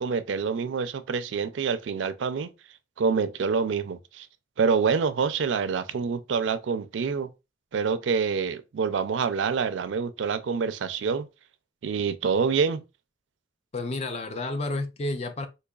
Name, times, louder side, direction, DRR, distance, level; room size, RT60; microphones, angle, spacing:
voice 1, 0.0-2.5 3.0-4.3 4.6-7.3 7.7-11.3 11.8-12.8, right 5 dB, 75° right, 0.4 m, -26 dB
voice 2, 13.7-15.5, left 2 dB, 35° left, 0.4 m, -30 dB
3.9 x 2.8 x 2.3 m
head